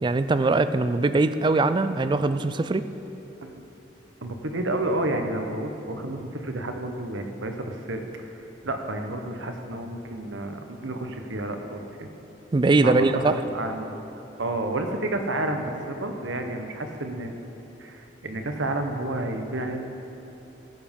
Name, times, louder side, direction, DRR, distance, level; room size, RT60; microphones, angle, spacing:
voice 1, 0.0-2.8 12.5-13.3, right 3 dB, 25° right, 12 dB, 0.3 m, -21 dB
voice 2, 4.2-12.1 12.8-14.0 14.4-17.3 17.8-19.9, right 2 dB, 80° right, 5 dB, 1.0 m, -30 dB
15.0 x 7.3 x 5.3 m, 3.0 s
head